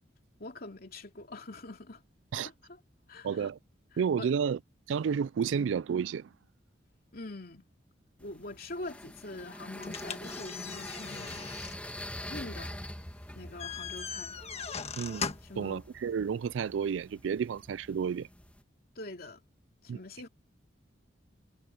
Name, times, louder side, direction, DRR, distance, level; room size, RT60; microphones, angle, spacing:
voice 1, 0.4-2.0 2.4-2.8 3.1-3.5 3.9-4.3 7.1-7.7 8.2-11.6 12.3-12.8 13.3-14.4 15.4-15.8 18.9-19.4 19.8-20.3, left 2 dB, 55° left, 2.8 m, -44 dB
voice 2, 3.2-3.6 4.0-4.6 4.9-6.3 15.0-15.3 15.6-18.3 19.9-20.0, right 7 dB, 80° right, 0.3 m, -31 dB
sound 1, 8.2-18.6, left 1 dB, 10° left, 2.4 m, -45 dB
sound 2, 9.8-15.6, left 6 dB, 35° left, 1.4 m, -40 dB
head